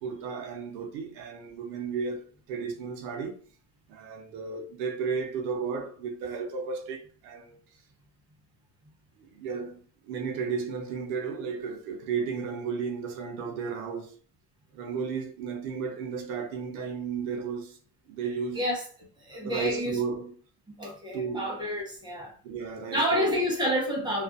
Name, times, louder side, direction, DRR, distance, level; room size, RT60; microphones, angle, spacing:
voice 1, 0.0-3.4 3.9-7.6 9.2-14.1 14.7-17.8 18.1-18.7 19.3-20.4 21.1-21.6 22.4-23.5, right 5 dB, 70° right, 0.8 m, -34 dB
voice 2, 19.2-20.0 20.8-22.3 22.9-24.2, equal, 10° right, 0.7 m, -29 dB
2.5 x 2.4 x 2.4 m
cardioid pair, 155°, 46 cm